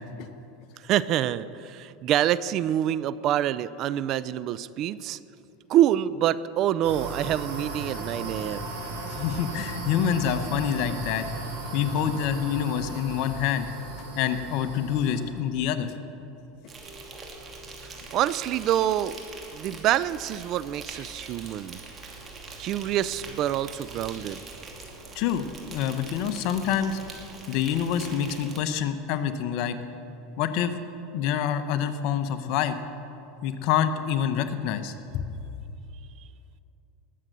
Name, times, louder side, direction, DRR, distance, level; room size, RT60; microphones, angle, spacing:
voice 1, 0.8-5.2 5.7-8.7 17.8-19.2 19.5-21.8 22.6-24.4, right 12 dB, 50° right, 17 dB, 0.4 m, -26 dB
sound 1, 6.8-15.2, right 2 dB, 85° right, 4.2 m, -36 dB
voice 2, 9.1-11.3 11.7-13.7 14.2-15.9 25.1-27.0 27.5-29.8 30.4-30.8 31.1-32.8 33.4-35.2, left 9 dB, 60° left, 10 dB, 1.0 m, -27 dB
Insect, 16.7-28.6, right 3 dB, 25° right, 2.6 m, -43 dB
19.5 x 7.6 x 6.7 m, 2.8 s
supercardioid pair, 110°, 0 cm